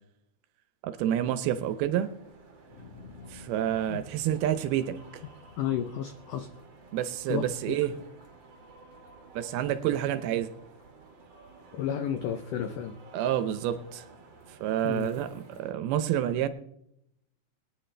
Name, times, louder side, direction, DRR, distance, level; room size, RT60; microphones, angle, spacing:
voice 1, 0.8-2.1 3.3-5.2 6.9-8.0 9.3-10.5 13.1-14.0 14.6-16.5, right 11 dB, 80° right, 2.5 m, -28 dB
sound 1, 1.4-15.7, right 3 dB, 50° right, 1.5 m, -53 dB
sound 2, 2.7-9.0 9.4-10.0, left 3 dB, 45° left, 1.5 m, -53 dB
voice 2, 5.6-6.5 7.3-7.8 11.7-13.0 14.8-15.1, left 9 dB, 90° left, 1.8 m, -32 dB
21.0 x 9.9 x 3.3 m
omnidirectional pair, 4.7 m